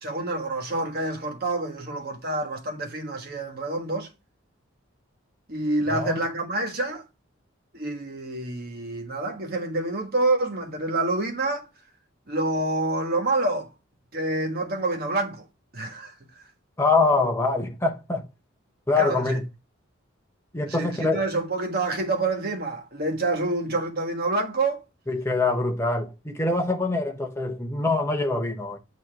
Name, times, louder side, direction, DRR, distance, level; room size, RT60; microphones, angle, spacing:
voice 1, 0.0-4.1 5.5-7.0 7.7-11.7 12.3-13.7 14.1-15.4 15.7-16.1 19.0-19.4 20.7-24.8, right 2 dB, 50° right, 1.4 m, -27 dB
voice 2, 16.8-18.3 18.9-19.4 20.5-21.2 25.1-28.8, left 3 dB, 15° left, 0.8 m, -24 dB
8.8 x 3.0 x 4.5 m
head